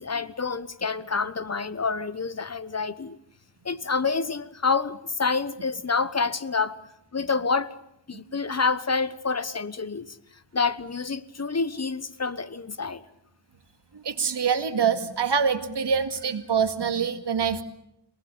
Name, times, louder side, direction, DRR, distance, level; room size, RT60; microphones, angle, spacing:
voice 1, 0.0-3.2 3.6-6.8 7.1-7.7 8.1-10.2 10.5-13.0, left 4 dB, 40° left, 1.1 m, -28 dB
voice 2, 13.9-17.6, right 6 dB, 75° right, 2.2 m, -25 dB
27.5 x 19.5 x 8.5 m
wide cardioid pair, 95°, 42 cm